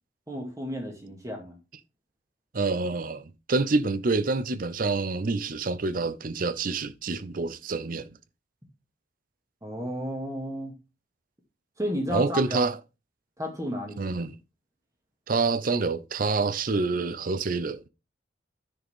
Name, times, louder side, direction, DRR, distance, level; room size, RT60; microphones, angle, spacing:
voice 1, 0.3-1.6 9.6-10.7 11.8-12.6 13.4-14.1, equal, 15° right, 2.1 m, -32 dB
voice 2, 2.5-8.2 12.1-12.8 14.0-14.4 15.3-17.8, right 3 dB, 45° right, 0.6 m, -27 dB
9.7 x 6.6 x 3.6 m
head